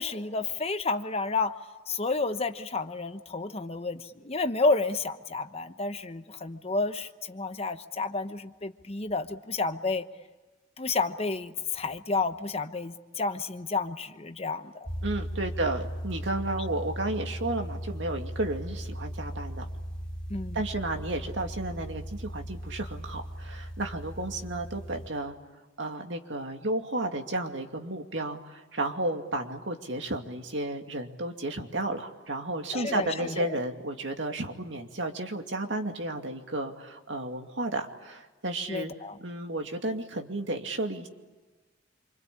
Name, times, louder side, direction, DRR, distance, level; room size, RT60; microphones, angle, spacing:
voice 1, 0.0-1.5 1.9-10.1 10.8-14.9 20.3-20.6 32.7-33.6 38.7-39.2, left 3 dB, 30° left, 9 dB, 1.0 m, -30 dB
sound 1, 14.9-25.1, equal, 5° left, 2.7 m, -37 dB
voice 2, 15.0-19.7 20.5-25.4 25.8-38.9 39.2-41.1, right 2 dB, 70° right, 4 dB, 2.6 m, -32 dB
27.5 x 25.5 x 8.6 m, 1.2 s
head